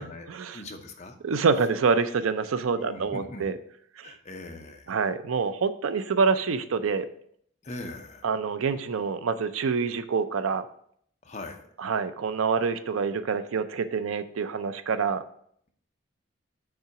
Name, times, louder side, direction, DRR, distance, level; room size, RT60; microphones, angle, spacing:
voice 1, 0.0-0.6 1.2-3.5 4.0-4.1 4.9-7.1 8.2-10.7 11.8-15.2, right 5 dB, 85° right, 12 dB, 0.5 m, -26 dB
voice 2, 0.5-1.1 2.7-3.5 4.0-5.0 7.6-8.3 11.2-11.6, left 2 dB, 35° left, 4 dB, 0.7 m, -41 dB
5.6 x 3.8 x 5.8 m, 0.66 s
head